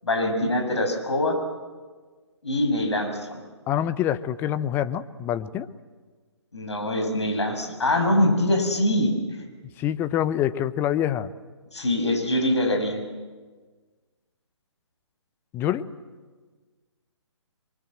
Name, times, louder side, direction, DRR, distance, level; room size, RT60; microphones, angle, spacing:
voice 1, 0.0-1.4 2.4-3.4 6.5-9.4 11.7-13.0, left 1 dB, 70° left, 4 dB, 7.2 m, -24 dB
voice 2, 3.7-5.7 9.8-11.3 15.5-15.9, left 11 dB, 15° left, 13 dB, 0.8 m, -26 dB
28.5 x 23.5 x 7.9 m, 1.4 s
figure-of-eight pair, 140°, 15 cm